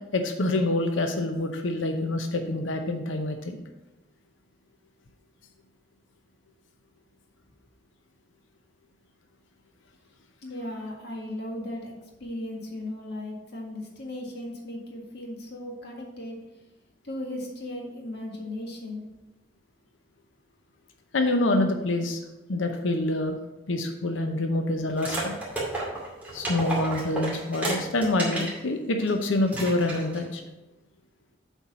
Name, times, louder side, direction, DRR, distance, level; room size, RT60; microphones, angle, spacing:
voice 1, 0.1-3.6 21.1-22.2 22.5-23.4 23.7-25.4 26.3-30.4, left 2 dB, 85° left, 5 dB, 0.8 m, -26 dB
voice 2, 10.4-11.9 12.2-16.4 17.0-19.0, left 1 dB, 60° left, 0 dB, 1.8 m, -36 dB
sound 1, 25.0-28.6 29.0-29.1 29.5-30.2, right 2 dB, 10° right, 2.4 m, -32 dB
7.9 x 4.6 x 5.5 m, 1.0 s
head